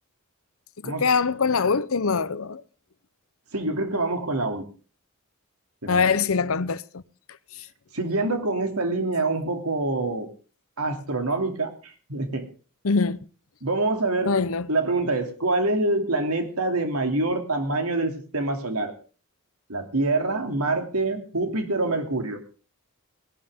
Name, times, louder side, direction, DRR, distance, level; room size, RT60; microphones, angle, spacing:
voice 1, 0.8-2.6 5.9-7.0 12.8-13.2 14.3-14.7, left 5 dB, 70° left, 0.8 m, -23 dB
voice 2, 3.5-4.6 5.8-6.1 7.9-10.3 10.8-12.4 13.6-14.4 14.7-18.9 19.7-22.4, right 2 dB, 80° right, 2.8 m, -26 dB
19.0 x 12.0 x 3.7 m
head